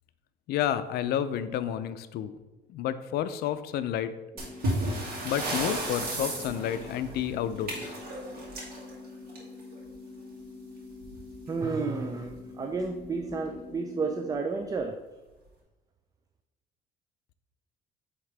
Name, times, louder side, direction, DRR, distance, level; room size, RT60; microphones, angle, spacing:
voice 1, 0.5-2.4 2.7-4.1 5.2-7.9, left 10 dB, 70° left, 12 dB, 0.4 m, -30 dB
sound 1, 4.3-14.3, left 3 dB, 20° left, 1.7 m, -46 dB
sound 2, 4.4-9.8 11.0-11.2 11.5-11.6 12.2-12.3 13.0-13.3, right 1 dB, 65° right, 2.1 m, -34 dB
voice 2, 11.5-15.0, right 4 dB, 20° right, 5 dB, 0.4 m, -31 dB
8.6 x 3.6 x 3.3 m, 1.1 s
cardioid pair, 110°, 17 cm